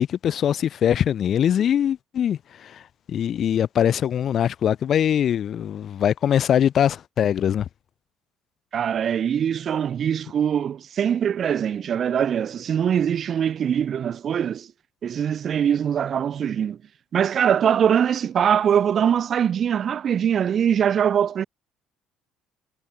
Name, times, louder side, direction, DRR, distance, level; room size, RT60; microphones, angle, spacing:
voice 1, 0.0-2.8 3.1-7.7, left 9 dB, 40° left, 0.3 m, -22 dB
voice 2, 8.7-14.7 15.0-16.8 17.1-21.4, right 8 dB, 40° right, 1.1 m, -22 dB
cardioid pair, 150°, 0 cm